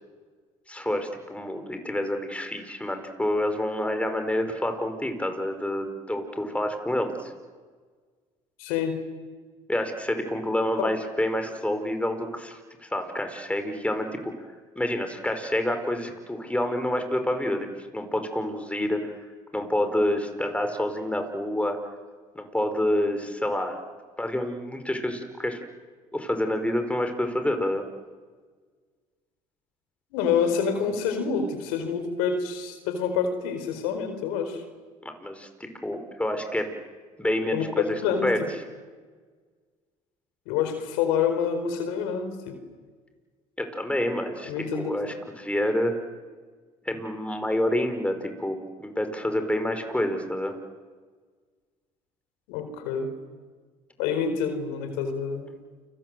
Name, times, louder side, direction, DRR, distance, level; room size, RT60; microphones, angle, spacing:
voice 1, 0.7-7.3 9.7-14.3 14.7-19.1 19.5-21.8 22.3-23.8 24.2-25.6 26.1-27.8 35.0-36.7 37.2-38.4 43.6-45.9 46.8-50.5, left 1 dB, 10° left, 6 dB, 5.0 m, -28 dB
voice 2, 8.6-9.0 10.8-10.9 30.1-34.6 37.5-38.3 40.5-42.6 44.4-44.9 52.5-53.1 54.0-55.5, left 6 dB, 80° left, 8 dB, 4.5 m, -27 dB
29.5 x 25.0 x 7.9 m, 1.5 s
hypercardioid pair, 65°, 16 cm